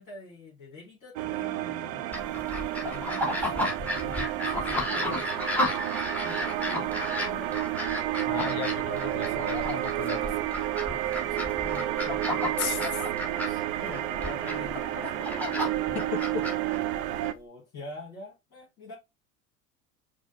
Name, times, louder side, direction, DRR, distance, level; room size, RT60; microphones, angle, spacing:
voice 1, 0.0-2.2 2.8-7.6 11.3-12.6 13.4-15.4 16.9-19.0, left 3 dB, 35° left, 2.1 m, -46 dB
sound 1, 1.2-17.3, right 14 dB, 60° right, 0.6 m, -31 dB
sound 2, 2.1-17.3, left 1 dB, 5° left, 1.3 m, -33 dB
voice 2, 8.3-10.3 12.6-13.0 15.9-16.5, left 11 dB, 65° left, 0.7 m, -35 dB
4.9 x 2.1 x 4.0 m
hypercardioid pair, 70°, 47 cm